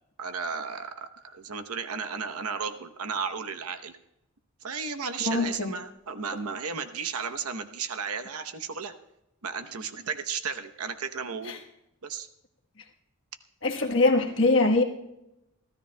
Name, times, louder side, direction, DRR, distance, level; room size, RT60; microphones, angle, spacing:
voice 1, 0.2-3.9 4.6-8.9 9.4-11.6 12.0-12.3, right 5 dB, 90° right, 8 dB, 0.9 m, -34 dB
voice 2, 5.2-5.7 11.5-11.6 13.6-14.8, left 2 dB, 60° left, 2 dB, 1.3 m, -23 dB
27.5 x 13.0 x 2.2 m, 0.88 s
head